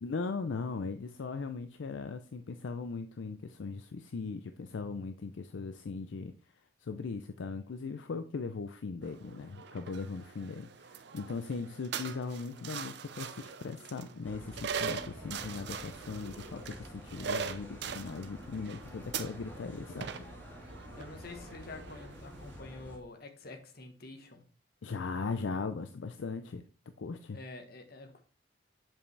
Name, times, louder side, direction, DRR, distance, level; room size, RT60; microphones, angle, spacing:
voice 1, 0.0-6.3 6.8-20.2 20.6-20.8 24.8-26.6 27.0-27.4, left 4 dB, 70° left, 0.4 m, -39 dB
sound 1, 9.0-22.6, right 6 dB, 60° right, 0.5 m, -42 dB
sound 2, 14.2-23.0, equal, 10° left, 1.6 m, -49 dB
voice 2, 20.9-24.4 27.3-28.2, left 3 dB, 50° left, 1.2 m, -47 dB
7.3 x 5.3 x 3.2 m
head